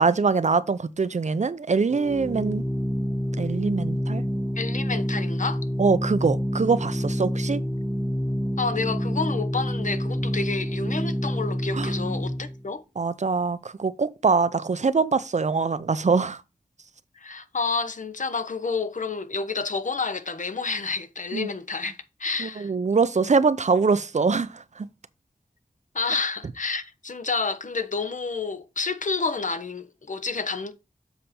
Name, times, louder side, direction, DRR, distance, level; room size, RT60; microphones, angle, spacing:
voice 1, 0.0-2.6 3.4-4.2 5.8-7.6 11.7-11.9 13.0-16.4 21.3-21.5 22.4-24.9, right 4 dB, 50° right, 0.6 m, -23 dB
Organ, 1.9-12.6, equal, ahead, 0.6 m, -28 dB
voice 2, 4.6-5.6 8.6-12.8 17.2-22.7 25.9-30.7, left 4 dB, 55° left, 1.0 m, -29 dB
7.1 x 5.1 x 4.3 m
wide cardioid pair, 65°, 15 cm